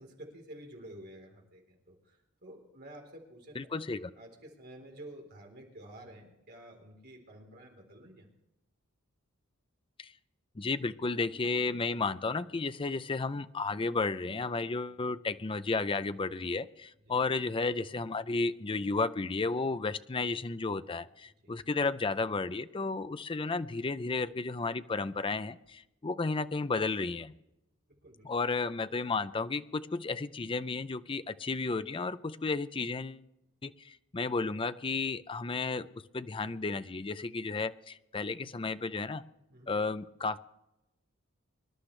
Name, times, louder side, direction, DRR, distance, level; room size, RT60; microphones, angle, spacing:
voice 1, 0.0-2.2 2.4-3.5 4.2-8.3 12.4-12.5 14.8-15.0 17.1-17.2 21.4-21.5 27.9-28.3 39.5-39.7, right 1 dB, 50° right, 1 dB, 3.8 m, -50 dB
voice 2, 3.6-4.1 10.0-10.1 10.6-27.4 28.2-33.2 33.6-35.9 36.1-39.2 39.7-40.4, left 3 dB, 25° left, 13 dB, 0.5 m, -33 dB
24.5 x 11.5 x 3.2 m, 0.90 s
head